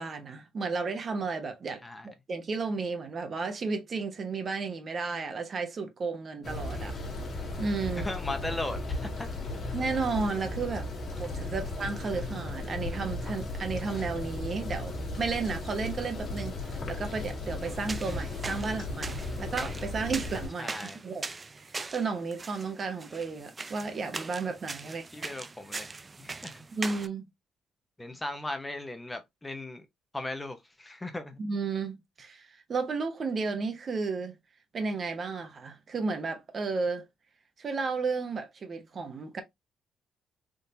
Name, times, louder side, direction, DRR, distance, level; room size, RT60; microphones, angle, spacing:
voice 1, 0.0-6.9 7.6-8.1 9.7-10.9 11.2-25.3 26.7-27.3 31.4-34.3 34.7-37.0 37.6-39.4, right 4 dB, 45° right, 0.8 m, -33 dB
sound 1, 6.4-20.5, left 2 dB, 50° left, 1.3 m, -36 dB
voice 2, 8.0-9.3 11.5-11.6 20.6-21.0 24.8-26.6 28.0-29.9 30.1-31.4, left 2 dB, 15° left, 0.7 m, -38 dB
sound 2, 17.6-27.1, right 3 dB, 25° right, 0.3 m, -41 dB
3.7 x 2.7 x 2.6 m
cardioid pair, 90°, 0 cm